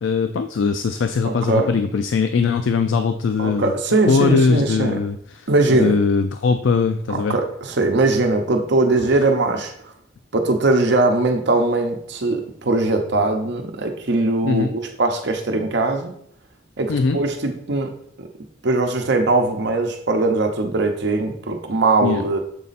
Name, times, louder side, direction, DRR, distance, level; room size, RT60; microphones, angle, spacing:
voice 1, 0.0-3.7 4.1-7.4 14.4-14.7 16.9-17.2 22.0-22.2, left 5 dB, 75° left, 8 dB, 0.4 m, -20 dB
voice 2, 1.2-1.8 3.4-5.0 5.5-5.9 7.1-9.9 10.3-16.2 16.8-18.3 18.6-22.4, right 2 dB, 65° right, 4 dB, 0.8 m, -20 dB
7.1 x 4.1 x 4.1 m, 0.66 s
head